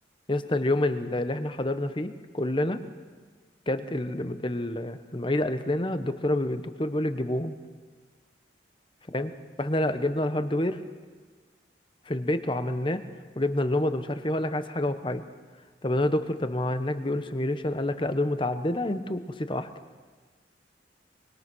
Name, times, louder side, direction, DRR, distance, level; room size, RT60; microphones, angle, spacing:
voice 1, 0.3-2.8 3.7-7.6 9.1-9.3 9.6-10.8 12.1-13.0 13.3-15.2 15.8-19.7, left 1 dB, 25° left, 10 dB, 1.1 m, -28 dB
24.5 x 23.5 x 6.3 m, 1.5 s
head